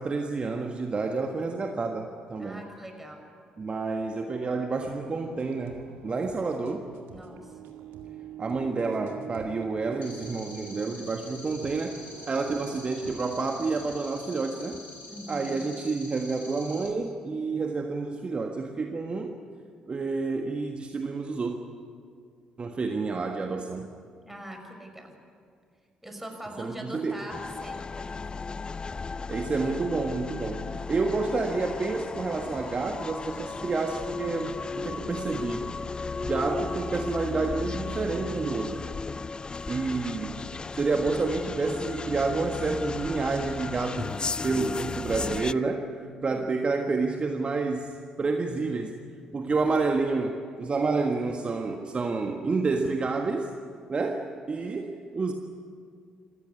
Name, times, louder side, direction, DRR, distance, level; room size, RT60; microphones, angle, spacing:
voice 1, 0.0-2.6 3.6-6.9 8.4-14.8 15.3-19.4 19.9-21.6 22.6-23.9 26.6-27.2 29.3-35.7 36.2-38.9 39.7-40.4 40.7-46.0 46.2-49.0 49.3-53.5 53.9-55.3, right 3 dB, 35° right, 4 dB, 1.5 m, -29 dB
voice 2, 2.4-3.2 7.1-7.5 15.1-15.7 24.2-25.1 26.0-28.2 46.3-46.4, equal, 5° right, 3 dB, 5.8 m, -42 dB
sound 1, 4.8-13.9, right 8 dB, 65° right, 2.1 m, -45 dB
sound 2, 10.0-16.9, left 2 dB, 45° left, 6.8 m, -46 dB
sound 3, 27.3-45.5, left 4 dB, 30° left, 0.5 m, -35 dB
27.5 x 15.0 x 9.7 m, 2.2 s
figure-of-eight pair, 45°, 3 cm